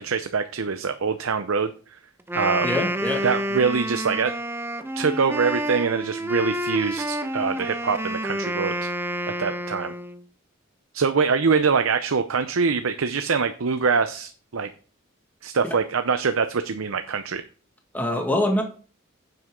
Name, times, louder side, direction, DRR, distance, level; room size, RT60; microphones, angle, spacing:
voice 1, 0.0-1.7 2.3-2.7 3.2-4.4 5.0-8.9 9.4-9.9 10.9-14.7 15.4-17.4, right 5 dB, 90° right, 9 dB, 0.7 m, -24 dB
Wind instrument woodwind instrument, 2.2-10.2, right 1 dB, 10° right, 0.7 m, -29 dB
voice 2, 2.6-3.3 15.6-15.8 17.9-18.6, left 1 dB, 10° left, 2 dB, 1.8 m, -24 dB
9.6 x 7.9 x 3.7 m, 0.39 s
head